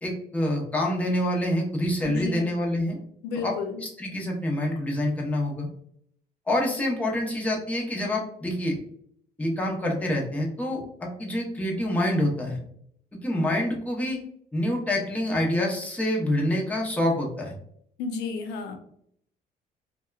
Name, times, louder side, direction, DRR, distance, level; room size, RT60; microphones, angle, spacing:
voice 1, 0.0-3.0 3.4-3.5 4.0-5.7 6.5-8.7 9.4-12.6 13.2-14.2 14.5-17.5, left 1 dB, 10° left, -2 dB, 0.7 m, -26 dB
voice 2, 2.0-2.6 3.2-3.8 18.0-18.8, left 4 dB, 85° left, 5 dB, 0.5 m, -32 dB
2.8 x 2.2 x 2.3 m, 0.66 s
cardioid pair, 110°, 17 cm